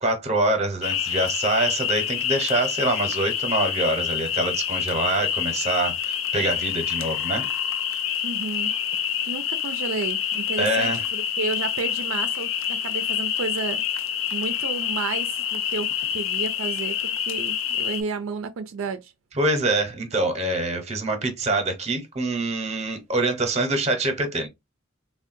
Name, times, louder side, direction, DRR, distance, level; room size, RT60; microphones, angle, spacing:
voice 1, 0.0-7.5 10.6-11.0 19.3-24.5, right 2 dB, 35° right, 0.8 m, -25 dB
sound 1, 0.8-18.0, left 9 dB, 70° left, 0.4 m, -27 dB
voice 2, 8.2-8.7 9.3-13.8 14.3-19.1, right 4 dB, 85° right, 0.4 m, -32 dB
3.5 x 2.2 x 2.5 m
head